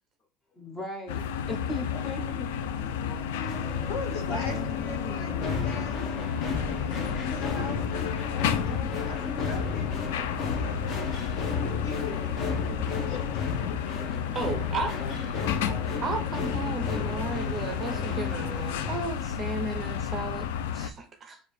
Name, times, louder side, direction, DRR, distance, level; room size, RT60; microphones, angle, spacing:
voice 1, 0.5-1.2 1.5-4.0 4.3-5.6, left 2 dB, 15° left, 3 dB, 0.7 m, -40 dB
sound 1, 1.1-20.9, left 8 dB, 85° left, 0.4 m, -32 dB
sound 2, 3.4-19.0, left 4 dB, 40° left, 0.9 m, -34 dB
voice 2, 3.9-11.3 11.6-12.7 13.0-13.4 14.8-16.4, left 3 dB, 55° left, 1 dB, 1.5 m, -41 dB
voice 3, 14.3-14.9 16.0-21.4, right 3 dB, 25° right, 6 dB, 0.5 m, -34 dB
4.5 x 2.5 x 3.3 m, 0.36 s
supercardioid pair, 140°, 0 cm